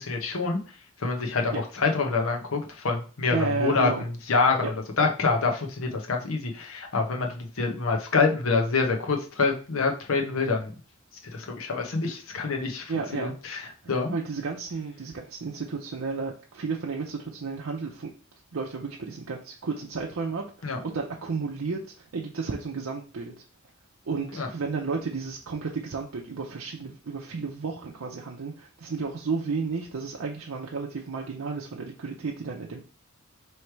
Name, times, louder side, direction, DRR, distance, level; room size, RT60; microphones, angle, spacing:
voice 1, 0.1-0.6 1.0-10.8 11.3-12.9 13.2-14.1 20.6-20.8 24.3-24.5, left 4 dB, 90° left, 3 dB, 0.9 m, -26 dB
voice 2, 3.3-4.0 4.6-4.7 12.9-13.3 14.1-18.1 18.5-23.3 24.1-32.8, right 4 dB, 85° right, -1 dB, 0.6 m, -32 dB
3.1 x 3.1 x 4.5 m, 0.38 s
head